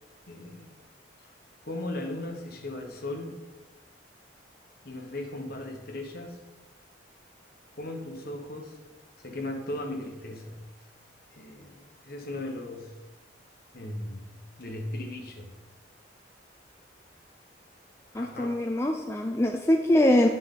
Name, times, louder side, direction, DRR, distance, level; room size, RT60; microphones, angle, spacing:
voice 1, 0.3-0.7 1.6-3.4 4.8-6.4 7.7-8.8 9.2-10.7 11.3-12.9 13.7-15.5 18.1-18.5, left 1 dB, 50° left, 3 dB, 1.1 m, -37 dB
voice 2, 18.1-20.3, left 1 dB, 15° left, 3 dB, 0.3 m, -23 dB
9.6 x 5.2 x 3.8 m, 1.2 s
head